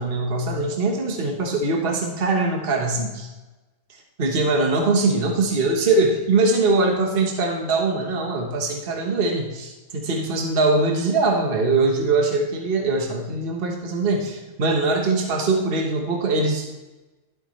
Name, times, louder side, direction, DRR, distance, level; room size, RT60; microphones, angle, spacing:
voice 1, 0.0-3.3 4.2-16.7, right 3 dB, 40° right, 2 dB, 1.5 m, -22 dB
12.5 x 12.0 x 3.3 m, 1.1 s
omnidirectional pair, 1.6 m